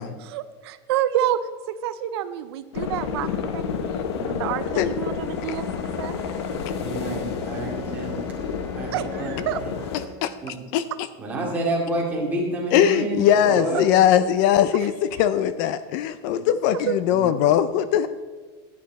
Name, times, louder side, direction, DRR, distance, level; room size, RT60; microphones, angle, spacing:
voice 1, 0.2-1.4 1.7-5.7 6.0-6.1 8.9-9.6, right 11 dB, 75° right, 12 dB, 0.6 m, -28 dB
sound 1, 2.7-10.1, left 6 dB, 80° left, 0.9 m, -30 dB
Bowed string instrument, 4.8-10.6, equal, 20° left, 1.2 m, -43 dB
voice 2, 6.8-8.2 8.7-9.3 10.4-10.6 11.2-13.9 17.1-17.2, right 2 dB, 10° right, -4 dB, 2.5 m, -29 dB
voice 3, 10.2-10.8 12.7-18.1, left 10 dB, 45° left, 13 dB, 0.4 m, -20 dB
12.0 x 9.9 x 4.1 m, 1.4 s
supercardioid pair, 170°, 14 cm